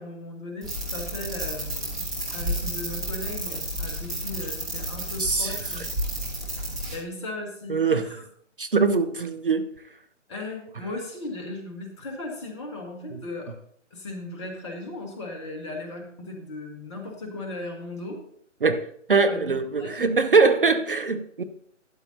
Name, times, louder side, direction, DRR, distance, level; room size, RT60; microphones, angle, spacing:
voice 1, 0.0-5.8 6.9-8.2 10.3-13.5 13.9-18.2 19.3-20.0, left 2 dB, 25° left, 1.5 m, -37 dB
sound 1, 0.6-7.0, right 1 dB, ahead, 0.9 m, -31 dB
voice 2, 5.2-5.6 7.7-8.0 8.6-9.7 13.1-13.2 18.6-21.4, right 4 dB, 45° right, 0.6 m, -22 dB
12.5 x 9.8 x 2.7 m
figure-of-eight pair, 145°, 38 cm